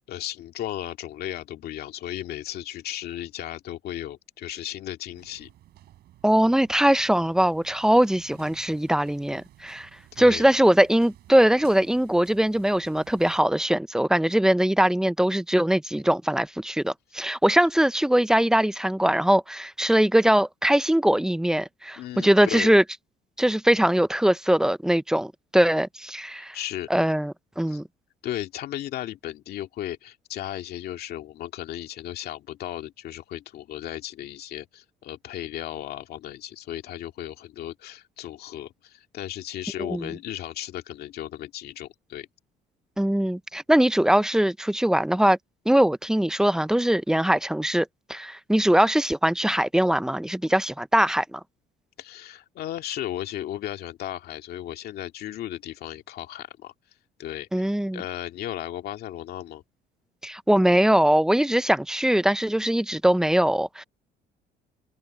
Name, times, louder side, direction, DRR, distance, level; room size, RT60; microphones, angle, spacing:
voice 1, 0.1-5.5 10.1-10.5 22.0-22.7 26.5-26.9 27.7-27.8 28.2-42.3 52.0-56.7 57.2-59.6, left 12 dB, 70° left, 2.3 m, -35 dB
sound 1, 5.1-13.4, right 13 dB, 70° right, 5.5 m, -53 dB
voice 2, 6.2-9.9 10.2-22.8 23.4-26.6 26.9-27.8 39.9-40.1 43.0-45.4 45.7-51.4 57.5-58.0 60.2-63.8, right 1 dB, 5° right, 0.6 m, -21 dB
cardioid pair, 110°, 17 cm